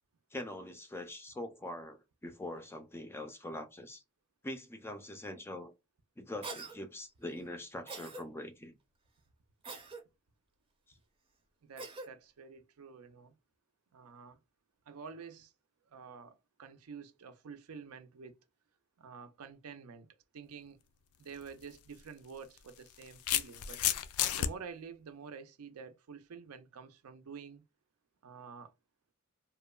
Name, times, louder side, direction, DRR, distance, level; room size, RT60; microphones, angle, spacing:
voice 1, 0.3-4.0 4.4-5.7 6.2-8.8, left 1 dB, 10° left, 0.4 m, -43 dB
Cough, 6.4-6.8 7.9-8.2 9.6-10.0 11.8-12.1, right 3 dB, 25° right, 0.6 m, -43 dB
voice 2, 11.6-13.3 13.9-14.4 14.9-15.5 15.9-18.3 19.0-20.1 20.3-20.8 21.2-23.8 24.4-27.6 28.2-28.7, right 6 dB, 85° right, 0.5 m, -49 dB
sound 1, 21.3-21.5 22.6-24.5, left 11 dB, 90° left, 0.3 m, -32 dB
2.9 x 2.1 x 2.2 m
head